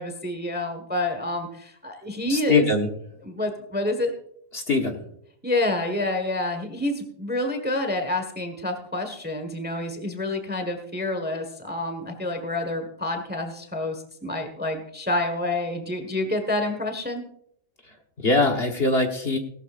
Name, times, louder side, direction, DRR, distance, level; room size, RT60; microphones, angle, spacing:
voice 1, 0.0-2.7 3.2-4.1 5.4-17.2, left 1 dB, 5° right, 5 dB, 1.2 m, -28 dB
voice 2, 2.3-2.9 4.5-5.0 18.2-19.4, left 3 dB, 40° left, 3 dB, 1.5 m, -22 dB
18.0 x 12.5 x 2.5 m, 0.71 s
omnidirectional pair, 1.6 m